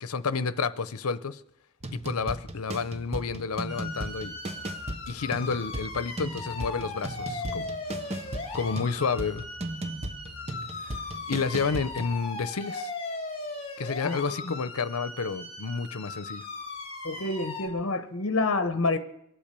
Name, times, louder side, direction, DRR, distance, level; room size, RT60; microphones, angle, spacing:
voice 1, 0.0-1.4 1.9-4.4 5.1-7.7 8.5-9.4 10.8-10.9 11.3-12.9 13.8-16.4, left 5 dB, 90° left, 0.7 m, -30 dB
sound 1, 1.8-12.2, right 1 dB, 30° right, 0.9 m, -37 dB
sound 2, 3.7-17.7, left 3 dB, 30° left, 3.2 m, -38 dB
voice 2, 17.0-19.0, left 3 dB, 60° left, 1.0 m, -28 dB
23.5 x 8.8 x 6.8 m
head